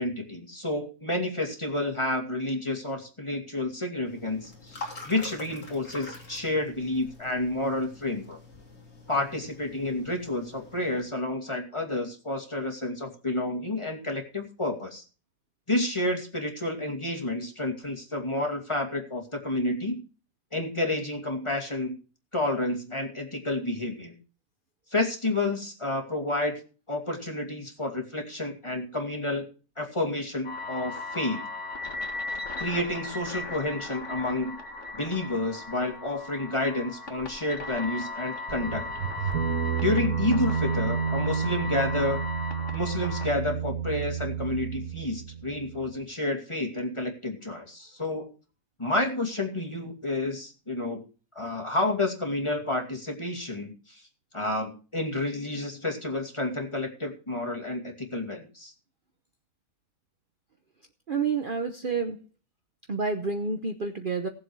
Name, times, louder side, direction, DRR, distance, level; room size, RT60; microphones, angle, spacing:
voice 1, 0.0-8.4 9.1-15.0 15.7-20.0 20.5-21.9 22.3-24.1 24.9-26.6 26.9-29.5 29.8-31.4 32.6-34.6 35.0-38.8 39.8-42.2 42.7-48.3 48.8-51.0 51.3-54.0 54.3-58.7, left 2 dB, 20° left, 2 dB, 2.5 m, -30 dB
sound 1, 4.1-11.1, left 2 dB, 85° left, 3.5 m, -45 dB
sound 2, 30.4-43.3, left 3 dB, 55° left, 2.1 m, -37 dB
sound 3, 38.5-45.9, right 7 dB, 85° right, 1.8 m, -30 dB
voice 2, 61.1-62.2 62.9-64.3, right 4 dB, 40° right, 5 dB, 1.0 m, -29 dB
18.5 x 7.5 x 4.7 m, 0.37 s
omnidirectional pair, 1.5 m